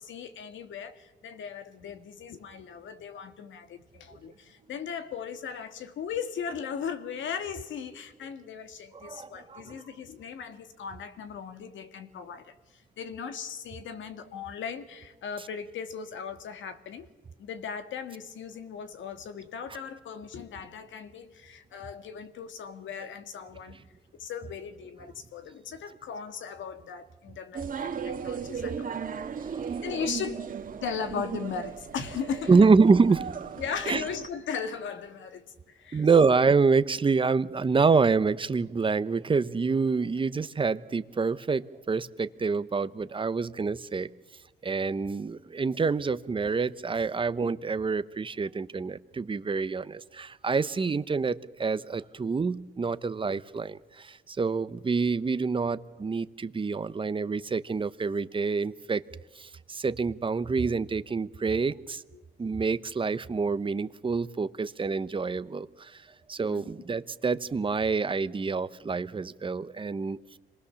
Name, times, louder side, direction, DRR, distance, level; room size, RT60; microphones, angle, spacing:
voice 1, 0.0-17.1 17.4-23.8 24.2-28.9 29.8-30.5 30.8-32.6 33.6-36.1 53.0-53.1 62.1-62.3 66.5-66.7, left 7 dB, 70° left, 9 dB, 2.1 m, -38 dB
voice 2, 8.9-9.8 28.9-29.9 32.5-33.4 33.9-34.0 35.9-44.1 44.6-59.0 59.4-62.0 62.4-66.0 66.3-70.2, right 4 dB, 25° right, 14 dB, 0.9 m, -27 dB
sound 1, 27.5-34.3, right 7 dB, 45° right, 2.0 m, -36 dB
26.5 x 19.5 x 7.1 m, 1.2 s
cardioid pair, 90°, 20 cm